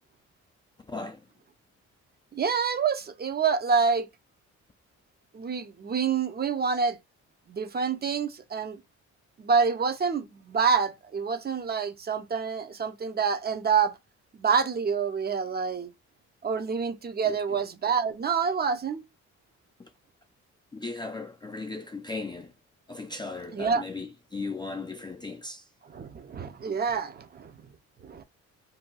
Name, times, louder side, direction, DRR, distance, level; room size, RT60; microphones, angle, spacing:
voice 1, 0.9-1.2 17.2-17.6 19.8-19.9 20.7-22.5 22.9-25.7, left 3 dB, 15° left, 0.4 m, -37 dB
voice 2, 2.3-4.1 5.3-7.0 7.5-8.8 9.4-14.0 14.3-15.9 16.4-19.0 23.5-23.8 25.8-27.5 28.0-28.2, right 6 dB, 35° right, 0.6 m, -27 dB
2.7 x 2.3 x 3.7 m
cardioid pair, 90°, 30 cm